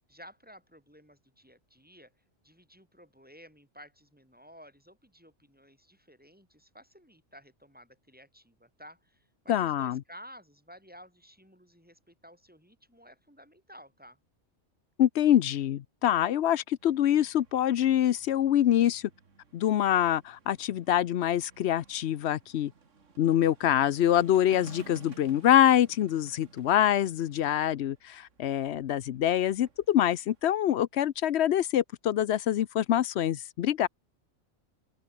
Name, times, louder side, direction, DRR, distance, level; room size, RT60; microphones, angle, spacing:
voice 1, 0.0-2.1 2.4-14.2, equal, 5° right, 3.7 m, -54 dB
voice 2, 9.5-10.0 15.0-19.0 19.5-22.7 23.2-33.9, left 11 dB, 65° left, 0.9 m, -25 dB
sound 1, 16.8-30.6, right 5 dB, 75° right, 2.2 m, -56 dB
omnidirectional pair, 1.3 m